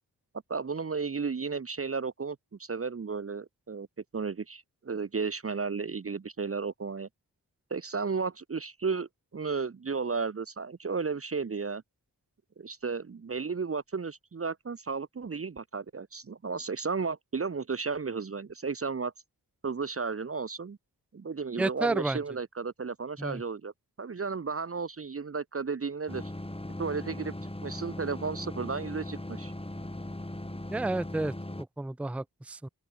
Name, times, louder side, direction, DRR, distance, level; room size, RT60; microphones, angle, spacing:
voice 1, 0.5-3.9 4.1-7.1 7.7-11.8 12.6-19.1 19.6-20.8 21.1-23.7 24.0-26.2 26.8-29.5, right 5 dB, 35° right, 0.8 m, -33 dB
voice 2, 21.6-22.2 23.2-23.4 30.7-32.7, right 2 dB, 5° right, 0.5 m, -31 dB
sound 1, 26.1-31.6, left 1 dB, 15° left, 5.3 m, -39 dB
open air
wide cardioid pair, 80°, 39 cm